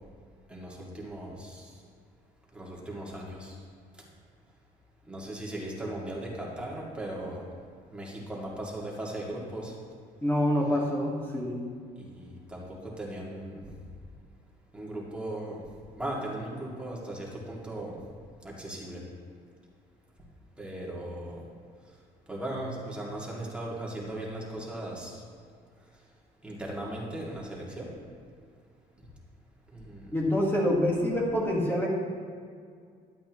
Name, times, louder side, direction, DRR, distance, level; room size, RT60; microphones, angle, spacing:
voice 1, 0.5-1.7 2.5-3.6 5.1-7.5 7.9-9.7 12.0-13.7 14.7-15.6 16.0-18.0 18.4-19.0 20.6-21.4 22.3-25.2 26.4-27.9 29.7-30.1, right 1 dB, 5° right, -4 dB, 2.4 m, -38 dB
voice 2, 10.2-11.6 30.1-31.9, left 1 dB, 10° left, -3 dB, 1.7 m, -26 dB
11.5 x 8.5 x 3.1 m, 2.1 s
cardioid pair, 110°, 17 cm